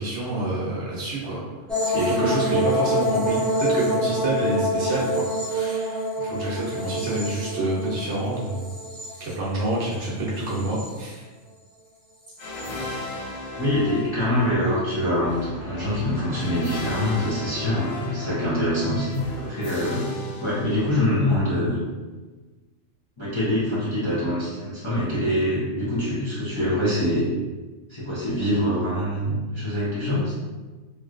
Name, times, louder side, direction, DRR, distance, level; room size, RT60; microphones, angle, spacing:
voice 1, 0.0-1.4 1.8-8.7 9.2-11.2 12.5-12.6, right 1 dB, 60° right, -6 dB, 1.1 m, -27 dB
sound 1, 1.7-9.9 10.3-11.1 12.4-12.7, equal, ahead, 0.3 m, -27 dB
sound 2, 12.4-21.3, left 2 dB, 80° left, 0.4 m, -35 dB
voice 2, 13.6-20.1 20.4-21.8 23.2-27.3 27.9-30.3, left 1 dB, 25° left, -10 dB, 0.7 m, -24 dB
3.0 x 2.8 x 2.4 m, 1.3 s
omnidirectional pair, 1.4 m